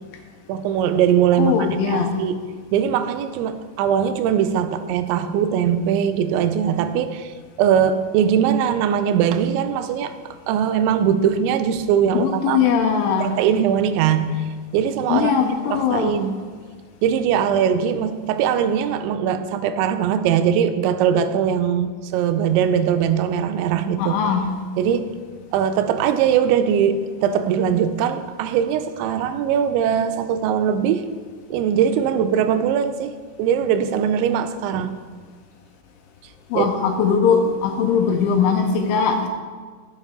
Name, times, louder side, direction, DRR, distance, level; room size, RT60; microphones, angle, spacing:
voice 1, 0.5-2.5 2.7-7.3 7.6-10.1 10.5-12.6 13.2-14.4 14.7-15.3 15.7-16.3 17.0-24.1 24.8-25.2 25.5-31.1 31.5-35.0 36.5-36.7, right 8 dB, 80° right, 10 dB, 2.7 m, -21 dB
voice 2, 1.4-2.2 12.1-13.4 15.1-16.2 24.0-24.5 36.5-39.3, left 6 dB, 80° left, 4 dB, 3.1 m, -20 dB
16.0 x 9.1 x 3.7 m, 1.5 s
omnidirectional pair, 5.7 m